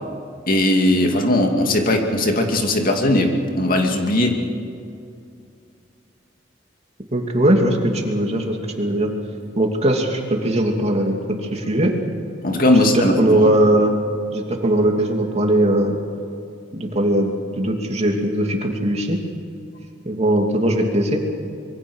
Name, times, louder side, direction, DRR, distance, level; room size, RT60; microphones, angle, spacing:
voice 1, 0.5-4.4 12.4-13.1 13.4-13.5, left 1 dB, 50° left, 3 dB, 2.5 m, -18 dB
voice 2, 7.1-9.1 9.6-11.9 12.7-13.9 14.3-16.0 16.7-19.2 20.0-21.2, right 1 dB, 35° right, 2 dB, 2.8 m, -20 dB
26.0 x 23.0 x 6.4 m, 2.4 s
head